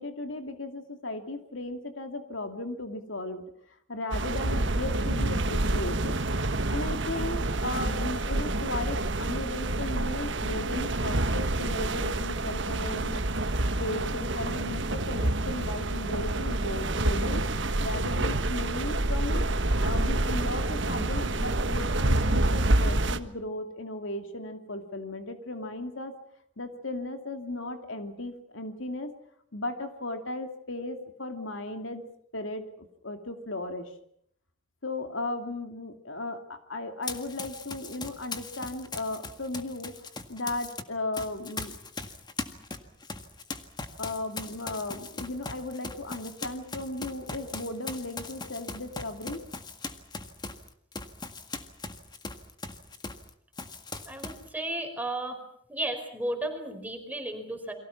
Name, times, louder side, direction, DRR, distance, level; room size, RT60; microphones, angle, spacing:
voice 1, 0.0-3.4 3.9-6.2 6.7-13.2 13.8-17.4 17.8-19.4 19.8-26.1 26.6-29.1 29.5-32.1 32.3-33.9 34.8-39.9 40.3-41.8 44.0-49.4, left 2 dB, 70° left, 6 dB, 2.5 m, -36 dB
sound 1, 4.1-23.2, right 2 dB, 60° right, 1.4 m, -28 dB
Run, 37.0-40.8 41.1-53.3 53.6-54.5, left 3 dB, 20° left, 1.8 m, -39 dB
voice 2, 54.1-55.4 55.7-57.7, right 1 dB, 10° right, 5 dB, 4.9 m, -34 dB
29.5 x 23.5 x 5.9 m, 0.67 s
head